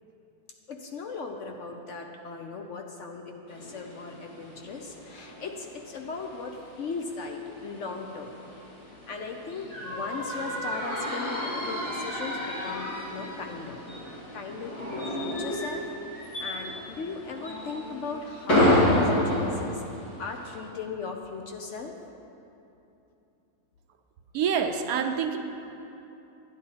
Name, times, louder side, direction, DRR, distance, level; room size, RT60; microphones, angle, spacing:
voice 1, 0.7-8.4 9.1-13.8 14.3-15.9 16.4-19.8 20.2-22.0, left 4 dB, 60° left, 3 dB, 0.9 m, -38 dB
sound 1, 3.5-20.6, left 1 dB, 80° left, 3.6 m, -31 dB
voice 2, 24.3-25.4, right 7 dB, 75° right, 6 dB, 1.1 m, -26 dB
11.0 x 9.7 x 4.1 m, 2.9 s
omnidirectional pair, 1.7 m